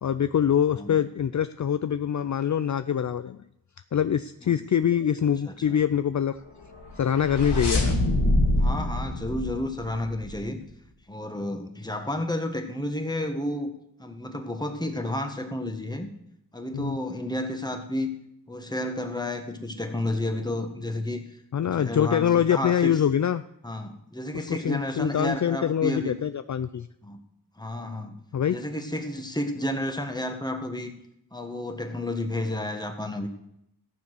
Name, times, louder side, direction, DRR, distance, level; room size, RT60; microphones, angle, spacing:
voice 1, 0.0-3.4 3.9-6.4 7.0-7.9 16.7-17.0 21.5-23.4 24.5-26.9 28.3-28.6, left 9 dB, 50° left, 12 dB, 0.5 m, -24 dB
voice 2, 5.5-5.8 8.6-10.6 11.1-13.7 14.0-16.1 16.5-18.2 18.5-21.2 21.6-23.0 23.6-26.1 27.0-27.2 27.6-28.2 28.5-30.9 31.3-33.3, left 1 dB, 10° left, 5 dB, 1.6 m, -31 dB
sound 1, 6.7-10.4, left 1 dB, 85° left, 2.4 m, -25 dB
14.5 x 7.1 x 6.3 m, 0.79 s
wide cardioid pair, 65°, 39 cm